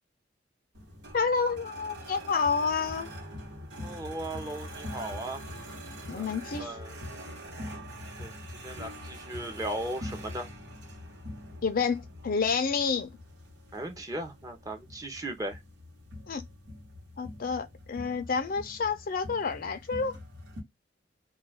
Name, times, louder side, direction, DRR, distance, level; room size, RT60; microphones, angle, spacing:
sound 1, 0.7-20.6, equal, 90° right, 1.2 m, -44 dB
voice 1, 1.1-3.1 6.1-6.7 11.6-13.1 16.3-16.4 17.2-20.2, left 5 dB, 50° left, 0.4 m, -29 dB
voice 2, 3.8-5.4 6.2-6.3 6.6-7.0 8.2-10.5 13.7-15.6, right 1 dB, 20° right, 0.6 m, -37 dB
2.3 x 2.2 x 3.4 m
head